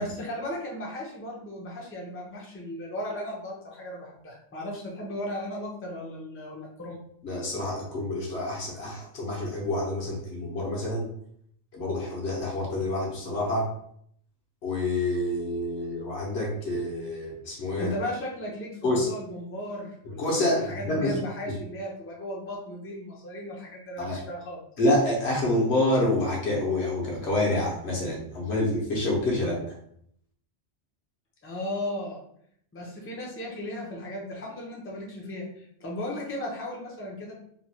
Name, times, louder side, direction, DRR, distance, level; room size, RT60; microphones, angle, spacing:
voice 1, 0.0-7.0 17.8-24.6 31.4-32.2 32.7-37.3, left 1 dB, 15° left, -3 dB, 0.5 m, -36 dB
voice 2, 7.2-11.1 11.7-13.7 14.6-17.9 18.8-19.1 20.2-21.1 24.0-24.2 24.8-29.6, left 1 dB, 70° left, -3 dB, 1.1 m, -27 dB
3.0 x 2.2 x 2.8 m, 0.68 s
omnidirectional pair, 1.2 m